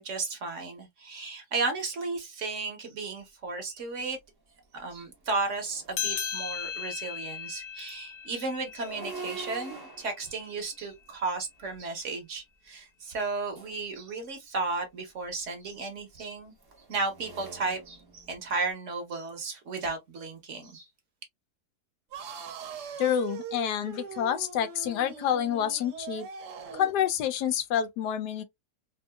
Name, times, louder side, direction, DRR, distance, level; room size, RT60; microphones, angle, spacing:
voice 1, 0.0-4.2 4.7-16.5 16.9-20.9, right 3 dB, 55° right, 1.0 m, -34 dB
sound 1, 4.2-4.3 4.8-6.7 8.6-11.8 13.1-13.9 15.3-18.7, right 4 dB, 30° right, 0.4 m, -46 dB
sound 2, 5.9-10.8, left 9 dB, 75° left, 1.2 m, -37 dB
sound 3, 22.1-27.0, right 6 dB, 85° right, 1.3 m, -41 dB
voice 2, 23.0-26.3 26.7-28.4, left 9 dB, 90° left, 1.2 m, -28 dB
3.7 x 2.5 x 2.2 m
omnidirectional pair, 1.7 m